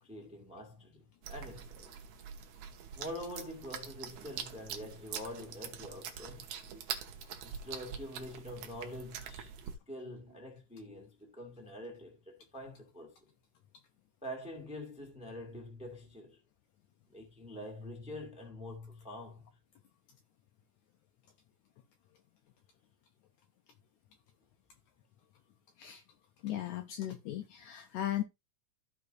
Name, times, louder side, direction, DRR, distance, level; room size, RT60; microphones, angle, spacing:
voice 1, 0.0-1.9 2.9-6.5 7.4-13.3 14.2-16.4 17.1-19.5, left 1 dB, 5° right, 1.3 m, -45 dB
sound 1, 1.2-9.8, right 8 dB, 70° right, 2.1 m, -44 dB
voice 2, 26.4-28.2, left 12 dB, 75° left, 1.8 m, -37 dB
14.5 x 4.8 x 2.6 m
omnidirectional pair, 3.8 m